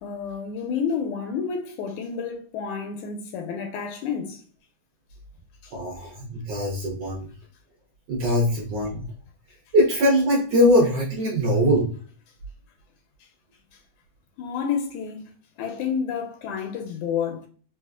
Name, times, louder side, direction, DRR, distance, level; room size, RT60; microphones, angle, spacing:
voice 1, 0.0-4.4 5.6-5.7 14.4-17.4, left 6 dB, 80° left, 1.9 m, -30 dB
voice 2, 5.7-7.3 8.1-9.0 9.7-11.9, equal, 65° right, 1.6 m, -21 dB
4.9 x 2.4 x 2.3 m
omnidirectional pair, 3.6 m